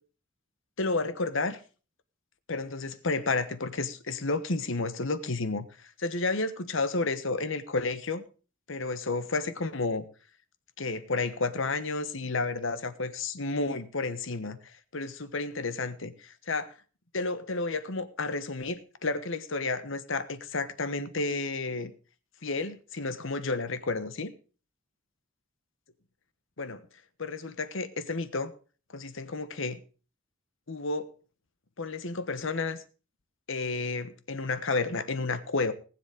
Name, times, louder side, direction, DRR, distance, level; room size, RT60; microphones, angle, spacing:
voice 1, 0.8-1.6 2.5-5.7 6.0-8.2 8.7-10.0 10.8-16.7 17.1-21.9 22.4-24.3 26.6-26.8 27.2-28.5 28.9-29.8 30.7-31.1 31.8-32.8 33.5-35.7, left 3 dB, 70° left, 1.2 m, -31 dB
19.0 x 7.4 x 5.1 m
head